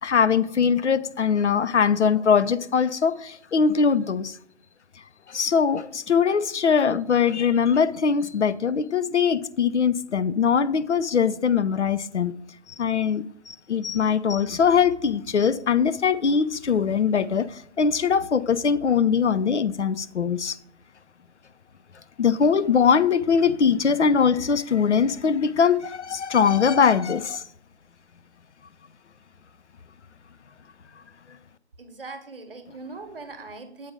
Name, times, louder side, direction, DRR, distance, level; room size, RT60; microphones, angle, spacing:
voice 1, 0.0-4.4 5.3-12.3 12.8-20.6 22.2-27.4, left 6 dB, 80° left, 0.5 m, -22 dB
voice 2, 31.8-33.9, right 3 dB, 55° right, 1.1 m, -40 dB
7.7 x 4.0 x 4.9 m
figure-of-eight pair, 150°, 34 cm